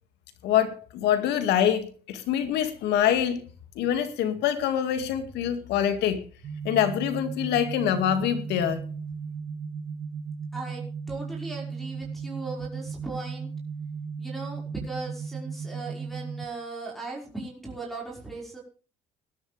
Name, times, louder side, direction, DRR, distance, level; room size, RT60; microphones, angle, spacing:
voice 1, 0.4-3.4 3.8-6.2 6.6-8.8, left 9 dB, 85° left, 9 dB, 2.2 m, -25 dB
sound 1, 6.4-16.4, right 5 dB, 60° right, 6.0 m, -36 dB
voice 2, 10.5-10.8 11.1-13.5 14.2-18.6, right 3 dB, ahead, 1 dB, 5.3 m, -38 dB
19.5 x 12.0 x 3.4 m, 0.37 s
cardioid pair, 110°, 17 cm